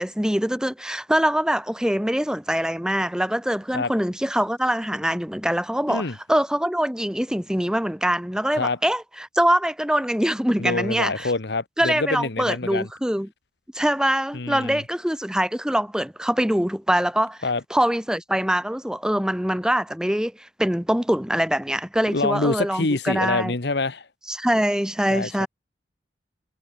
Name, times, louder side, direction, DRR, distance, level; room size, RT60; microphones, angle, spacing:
voice 1, 0.0-11.3 11.8-13.3 13.7-17.4 17.7-23.5 24.3-25.5, equal, 5° right, 1.5 m, -23 dB
voice 2, 10.6-12.9 14.3-14.8 17.4-17.6 22.1-24.1 25.1-25.5, left 3 dB, 65° left, 1.2 m, -26 dB
head